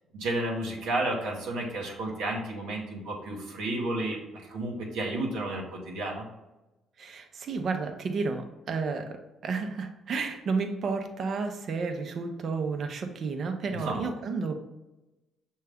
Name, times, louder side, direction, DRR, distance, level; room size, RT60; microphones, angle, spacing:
voice 1, 0.1-4.2 4.5-6.2 13.7-14.1, right 2 dB, 90° right, -2 dB, 1.0 m, -32 dB
voice 2, 7.0-14.6, right 4 dB, 55° right, 6 dB, 0.7 m, -31 dB
6.3 x 2.3 x 3.5 m, 1.0 s
cardioid pair, 90°, 0 cm